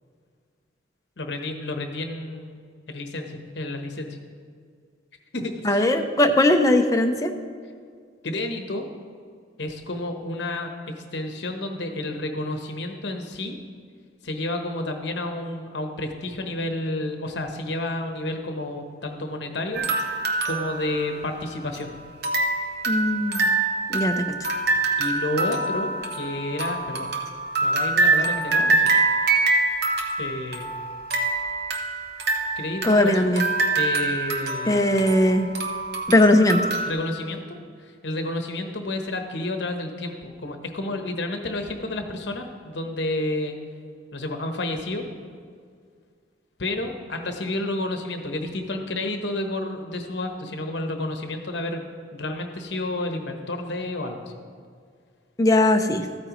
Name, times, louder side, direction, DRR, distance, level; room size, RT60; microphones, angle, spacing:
voice 1, 1.2-2.6 2.9-4.2 5.3-5.8 8.2-8.9 9.6-13.5 14.2-19.9 20.5-21.9 25.0-27.1 27.6-28.9 30.2-30.7 32.6-33.4 33.7-34.9 36.9-43.6 44.1-45.0 46.6-51.8 52.1-54.3, left 2 dB, 65° left, 4 dB, 1.0 m, -30 dB
voice 2, 5.6-7.3 22.9-23.5 23.9-24.2 32.8-33.4 34.6-35.5 36.1-36.6 55.4-56.1, left 1 dB, 20° left, 5 dB, 0.5 m, -19 dB
sound 1, 19.7-21.8 22.2-36.9, right 3 dB, 55° right, 0.9 m, -25 dB
14.0 x 8.7 x 3.0 m, 2.1 s
head